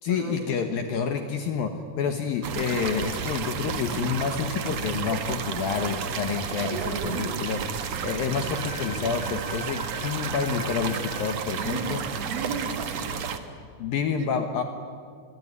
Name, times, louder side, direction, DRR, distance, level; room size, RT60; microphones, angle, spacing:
voice 1, 0.0-12.0 13.8-14.6, left 6 dB, 65° left, 6 dB, 2.5 m, -29 dB
sound 1, 2.4-13.4, right 6 dB, 85° right, 1.4 m, -32 dB
voice 2, 6.5-7.4 11.5-11.9 12.3-13.3 14.2-14.3, right 5 dB, 55° right, 5 dB, 3.9 m, -34 dB
Wind instrument woodwind instrument, 8.4-11.2, left 2 dB, 30° right, 5.2 m, -42 dB
26.5 x 21.5 x 9.7 m, 2.2 s
omnidirectional pair, 5.4 m